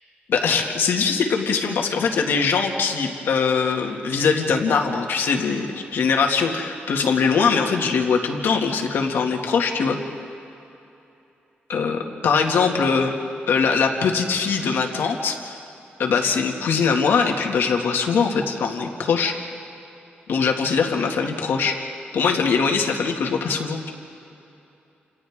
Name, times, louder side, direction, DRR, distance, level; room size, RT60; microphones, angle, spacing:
voice 1, 0.3-10.0 11.7-13.2 13.5-15.6 16.0-19.3 20.3-21.8 22.1-23.9, left 5 dB, 80° left, 2 dB, 2.1 m, -22 dB
29.5 x 28.0 x 3.7 m, 2.8 s
wide cardioid pair, 180°, 4 cm